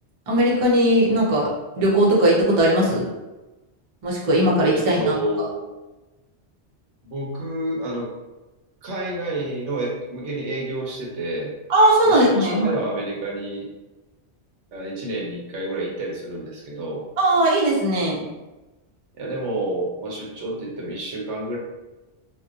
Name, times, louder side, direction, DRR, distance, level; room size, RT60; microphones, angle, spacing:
voice 1, 0.3-1.5 1.8-3.1 4.0-5.1 11.7-12.7 17.2-18.2, right 1 dB, 40° right, -5 dB, 0.6 m, -18 dB
voice 2, 4.7-5.6 7.0-8.1 8.8-11.5 12.0-13.7 14.7-17.0 19.2-21.6, right 1 dB, 85° right, -3 dB, 1.0 m, -29 dB
2.7 x 2.1 x 2.4 m, 1.1 s
omnidirectional pair, 1.2 m